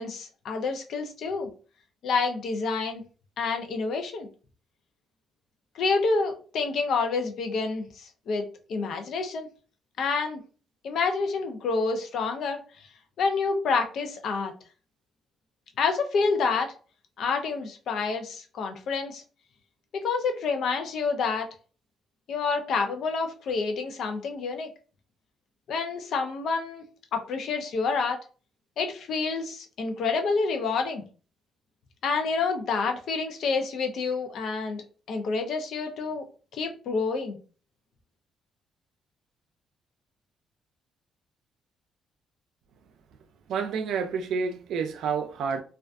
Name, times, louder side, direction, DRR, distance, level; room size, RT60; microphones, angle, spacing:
voice 1, 0.0-1.5 2.0-3.0 3.4-4.3 5.8-9.5 10.0-10.4 10.8-12.6 13.2-14.5 15.8-16.7 17.2-19.2 19.9-21.5 22.3-24.7 25.7-26.8 27.1-28.2 28.8-31.0 32.0-34.8 35.1-36.3 36.5-37.4, left 4 dB, 70° left, 0.5 m, -28 dB
voice 2, 43.5-45.6, right 5 dB, 80° right, 0.3 m, -29 dB
2.4 x 2.2 x 2.4 m
cardioid pair, 90°, 0 cm